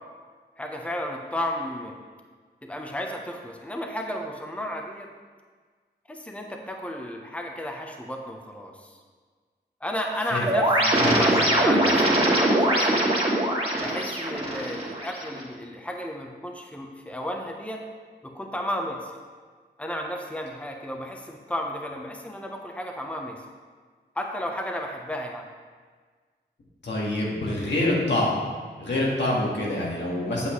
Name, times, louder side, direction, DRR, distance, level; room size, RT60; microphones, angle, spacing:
voice 1, 0.6-2.0 2.6-5.1 6.1-9.0 9.8-13.1 13.8-17.8 18.2-19.1 19.8-23.4 24.1-25.4, left 1 dB, 5° left, 1 dB, 0.9 m, -33 dB
sound 1, 10.4-15.4, right 1 dB, 30° right, 2.3 m, -22 dB
voice 2, 26.8-28.4 28.8-30.5, left 1 dB, 90° left, -5 dB, 1.9 m, -26 dB
8.1 x 7.8 x 3.2 m, 1.5 s
wide cardioid pair, 70°, 18 cm